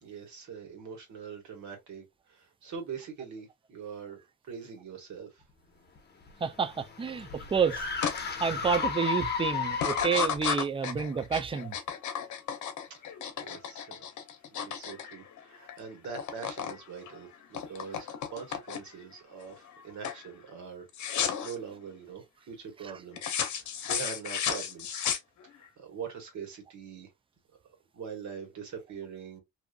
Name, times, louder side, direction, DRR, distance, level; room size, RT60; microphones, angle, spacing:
voice 1, 0.0-5.4 12.9-13.0 13.4-14.1 14.5-25.2 25.5-27.1 27.9-29.4, right 6 dB, 70° right, 1.4 m, -43 dB
sound 1, 6.0-10.5, left 5 dB, 35° left, 0.9 m, -34 dB
voice 2, 6.4-7.9 8.2-11.7, right 6 dB, 20° right, 0.4 m, -29 dB
sound 2, 8.0-8.2 8.6-9.1 9.7-15.8 16.0-16.8 17.1-19.0 19.5-19.8 20.0-20.3 20.9-21.5 23.2-25.7, left 8 dB, 70° left, 0.7 m, -33 dB
2.7 x 2.4 x 2.2 m
cardioid pair, 90°, 30 cm